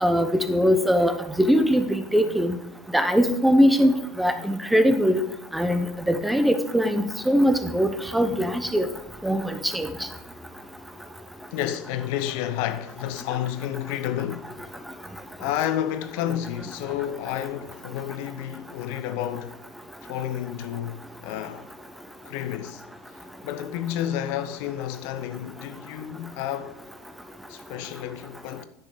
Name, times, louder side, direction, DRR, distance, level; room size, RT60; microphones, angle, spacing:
voice 1, 0.0-2.5 2.9-5.3 5.5-8.9 9.2-10.1, equal, 5° right, 1.0 m, -21 dB
voice 2, 11.5-14.7 15.4-19.6 20.0-21.7 22.2-22.8 23.4-26.8 27.5-28.7, left 11 dB, 65° left, 0.8 m, -31 dB
10.5 x 6.3 x 5.0 m
hypercardioid pair, 75°, 0 cm